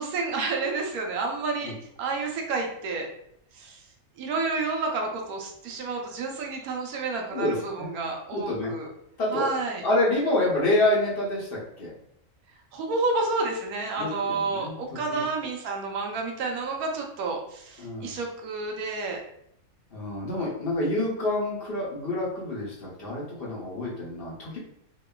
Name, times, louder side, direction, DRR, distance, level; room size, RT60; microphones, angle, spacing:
voice 1, 0.0-1.7 2.0-3.1 3.5-3.8 4.2-8.9 9.3-9.8 12.7-19.2, right 3 dB, 90° right, 1 dB, 1.1 m, -30 dB
voice 2, 7.3-7.9 8.3-8.7 9.2-9.5 9.8-11.9 14.0-15.2 17.8-18.2 19.9-24.6, left 1 dB, 55° left, -5 dB, 0.7 m, -27 dB
2.9 x 2.1 x 2.2 m, 0.72 s
omnidirectional pair, 1.5 m